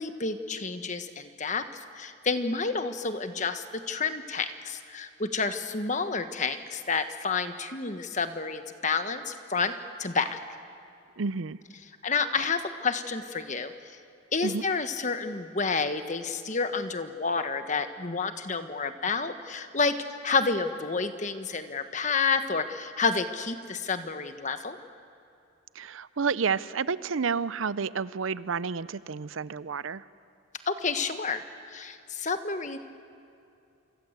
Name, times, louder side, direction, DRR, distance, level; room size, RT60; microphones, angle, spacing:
voice 1, 0.0-9.7 10.0-10.4 12.0-13.7 14.3-19.9 20.2-24.8 30.7-31.4 31.7-32.8, left 4 dB, 35° left, 9 dB, 1.3 m, -29 dB
voice 2, 11.2-11.6 14.4-14.6 25.7-30.0, right 5 dB, 75° right, 17 dB, 0.6 m, -30 dB
27.5 x 25.0 x 8.2 m, 2.7 s
head